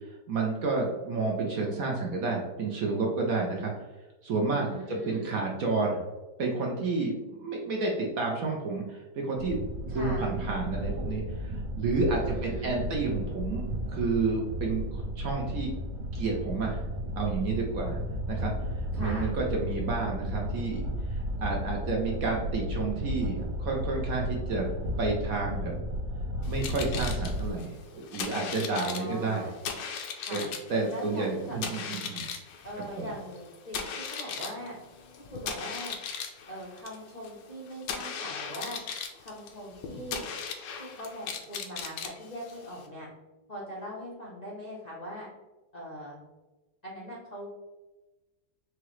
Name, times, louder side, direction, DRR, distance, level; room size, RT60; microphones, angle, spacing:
voice 1, 0.3-3.7 4.2-6.0 6.4-15.7 16.1-16.8 17.2-18.0 18.3-18.5 19.0-24.7 25.0-25.7 26.4-29.5 30.3-30.4 30.7-32.3 33.0-33.1, right 3 dB, 65° right, 0 dB, 1.0 m, -30 dB
voice 2, 4.5-5.3 9.9-10.3 12.2-12.9 18.9-19.3 28.7-29.5 30.2-30.5 30.9-31.6 32.6-34.8 35.3-35.9 36.5-38.8 39.2-40.3 40.8-43.1 43.5-45.3 45.7-46.2 46.8-47.5, equal, 45° left, -6 dB, 0.5 m, -41 dB
sound 1, 9.3-27.5, equal, 90° right, 1.4 m, -34 dB
sound 2, 26.4-42.9, left 6 dB, 75° left, 1.2 m, -38 dB
4.7 x 2.9 x 3.1 m, 1.1 s
omnidirectional pair, 2.0 m